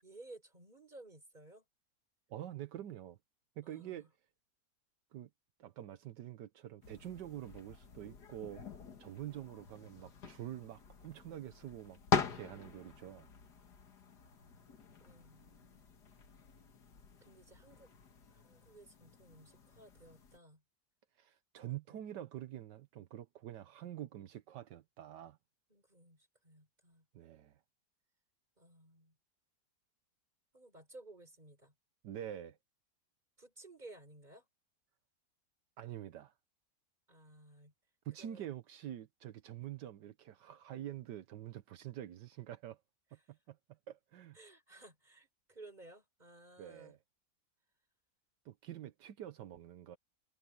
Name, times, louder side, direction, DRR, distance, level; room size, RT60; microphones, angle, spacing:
voice 1, 0.0-1.6 3.6-4.1 15.0-15.8 17.2-17.9 18.4-20.6 21.7-22.0 25.7-27.1 28.6-29.1 30.5-31.7 33.4-34.5 37.1-37.7 38.2-38.5 44.3-47.0, right 2 dB, 25° right, 4.9 m, -57 dB
voice 2, 2.3-3.2 3.6-4.1 5.1-5.3 5.6-8.6 9.0-13.3 21.2-25.4 27.1-27.6 32.0-32.6 35.8-36.3 38.0-42.8 43.3-44.4 46.6-47.0 48.4-50.0, right 11 dB, 80° right, 1.5 m, -46 dB
sound 1, 6.8-20.4, left 6 dB, 70° left, 2.3 m, -43 dB
omnidirectional pair, 1.8 m